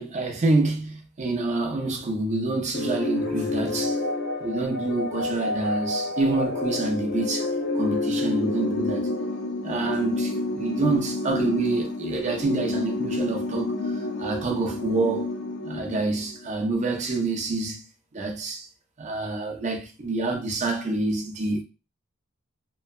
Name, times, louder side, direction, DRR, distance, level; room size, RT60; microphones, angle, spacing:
voice 1, 0.0-4.0 4.4-9.1 9.6-15.3 15.6-17.9 18.1-18.7 19.0-21.6, right 2 dB, 35° right, 0.5 m, -27 dB
sound 1, 2.7-16.5, left 2 dB, 50° left, 0.4 m, -29 dB
3.0 x 2.0 x 2.3 m
head